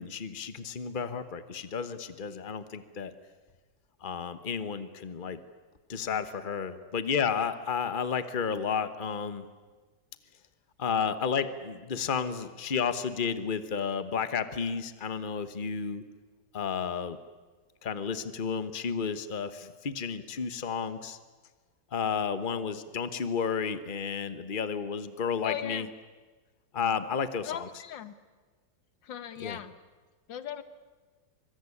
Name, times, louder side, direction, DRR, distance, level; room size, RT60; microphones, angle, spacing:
voice 1, 0.0-3.1 4.0-5.4 5.9-9.5 10.8-16.0 16.5-17.2 17.8-21.2 21.9-25.9 26.7-27.7 29.4-29.6, left 6 dB, 30° left, 12 dB, 1.3 m, -32 dB
voice 2, 25.4-25.9 27.5-28.1 29.0-29.7 30.3-30.6, left 9 dB, 85° left, 13 dB, 1.9 m, -37 dB
24.5 x 23.0 x 9.9 m, 1.3 s
omnidirectional pair, 2.0 m